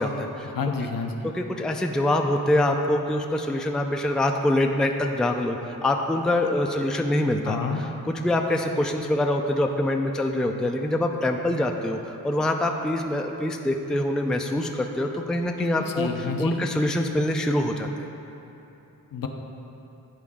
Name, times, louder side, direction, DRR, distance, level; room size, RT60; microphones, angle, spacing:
voice 1, 0.0-0.5 1.2-7.6 8.1-12.0 12.2-17.9, left 1 dB, ahead, 3 dB, 0.4 m, -25 dB
voice 2, 0.5-1.1 7.4-7.8 15.6-16.6 19.1-19.3, left 5 dB, 60° left, 3 dB, 0.7 m, -29 dB
10.0 x 3.8 x 3.6 m, 3.0 s
cardioid pair, 45°, 39 cm